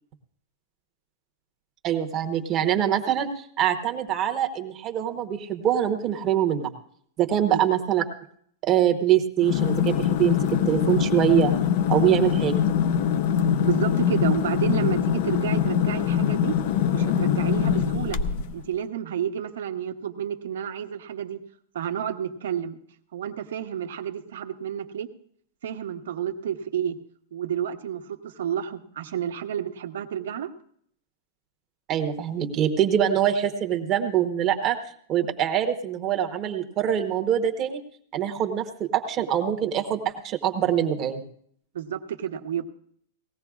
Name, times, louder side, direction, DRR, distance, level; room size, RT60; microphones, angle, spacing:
voice 1, 1.8-6.7 7.2-8.0 8.6-11.5 11.9-12.6 31.9-34.8 35.1-37.8 38.1-41.2, right 10 dB, 20° right, 5 dB, 0.9 m, -24 dB
sound 1, 9.4-18.6, left 8 dB, 40° left, 0.5 m, -23 dB
voice 2, 13.6-16.6 16.9-18.2 18.5-21.4 21.7-22.8 23.1-25.1 25.6-27.0 27.3-30.5 41.7-42.6, right 9 dB, 75° right, 6 dB, 1.1 m, -30 dB
18.5 x 15.5 x 2.4 m, 0.63 s
supercardioid pair, 175°, 0 cm